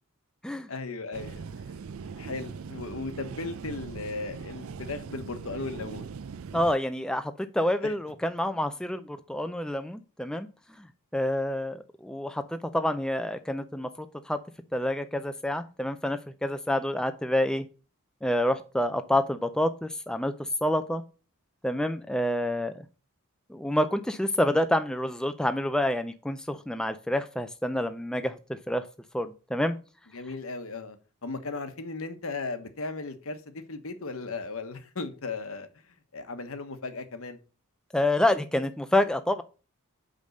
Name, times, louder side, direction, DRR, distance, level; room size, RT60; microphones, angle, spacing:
voice 1, 0.7-1.4 2.0-6.1 7.8-7.9 30.1-31.0 31.2-35.7 36.1-37.4, left 3 dB, 65° left, 1.1 m, -36 dB
sound 1, 1.1-6.8, right 5 dB, 65° right, 0.4 m, -40 dB
voice 2, 6.5-10.5 10.8-10.9 11.1-13.9 14.3-14.4 14.7-17.6 18.2-21.0 21.6-22.8 23.5-28.4 28.7-28.8 29.1-29.8 37.9-39.4, left 1 dB, 5° left, 0.4 m, -28 dB
5.2 x 5.2 x 6.5 m
head